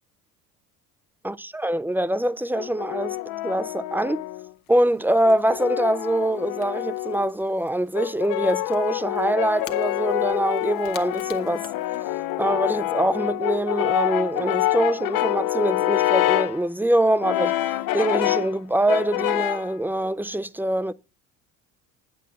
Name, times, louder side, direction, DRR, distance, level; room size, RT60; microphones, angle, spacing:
voice 1, 1.2-3.2 3.4-4.2 4.7-11.7 12.0-12.1 12.4-20.9, right 1 dB, 5° right, 0.4 m, -24 dB
Brass instrument, 2.5-4.5 5.2-7.3 8.0-16.6 17.2-18.6 18.9-19.7, left 15 dB, 55° left, 0.7 m, -26 dB
Crackle / Crack, 3.0-12.5, left 13 dB, 75° left, 1.2 m, -50 dB
9.2 x 7.6 x 4.2 m
hypercardioid pair, 60°, 41 cm